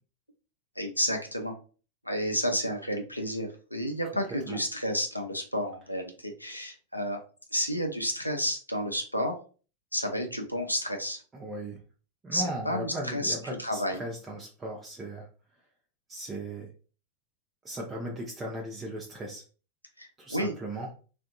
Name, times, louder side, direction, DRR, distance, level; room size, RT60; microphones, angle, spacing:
voice 1, 0.8-1.5 2.0-7.2 7.5-9.4 9.9-11.2 12.3-14.0 20.0-20.5, equal, 90° left, 2 dB, 0.5 m, -31 dB
voice 2, 11.3-11.8 12.2-15.3 16.1-16.7 17.6-19.4 20.2-20.9, right 1 dB, 15° right, -1 dB, 0.6 m, -37 dB
3.5 x 2.5 x 2.3 m, 0.37 s
figure-of-eight pair, 90°, 0 cm